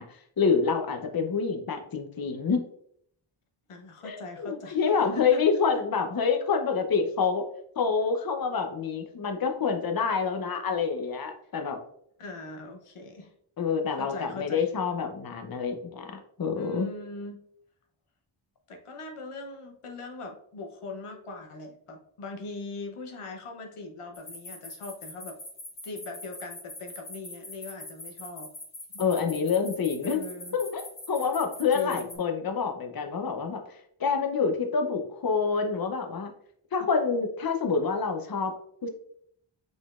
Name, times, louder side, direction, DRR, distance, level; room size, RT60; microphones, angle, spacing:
voice 1, 0.0-2.6 4.0-7.4 7.8-11.8 13.6-16.9 29.0-30.2 30.5-36.3 36.7-38.5 38.8-38.9, left 5 dB, 45° left, 5 dB, 0.7 m, -27 dB
voice 2, 3.7-5.4 5.7-5.8 12.2-13.3 14.0-14.7 16.6-17.4 18.7-25.4 25.8-28.5 28.9-29.0 30.0-30.6 31.7-32.2, left 3 dB, 85° left, 4 dB, 0.8 m, -40 dB
sound 1, 24.1-32.1, left 2 dB, 70° left, 1.7 m, -42 dB
5.1 x 4.1 x 2.4 m, 0.67 s
wide cardioid pair, 65°, 50 cm